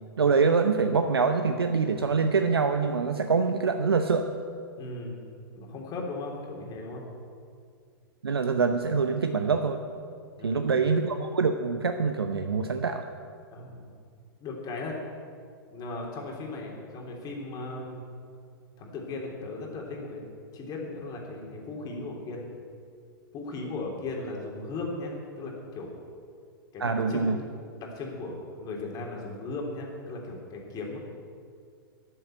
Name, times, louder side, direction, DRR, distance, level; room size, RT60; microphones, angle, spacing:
voice 1, 0.2-4.3 8.2-9.8 10.4-13.0 26.8-27.4, right 5 dB, 85° right, 7 dB, 0.8 m, -25 dB
voice 2, 4.8-5.2 5.5-7.0 10.4-10.8 13.5-13.9 14.4-15.0 15.7-18.0 18.8-20.2 20.5-22.5 23.3-25.9 26.7-27.5 27.8-31.0, left 2 dB, 30° left, -1 dB, 3.5 m, -37 dB
13.0 x 7.8 x 9.4 m, 2.2 s
hypercardioid pair, 110°, 12 cm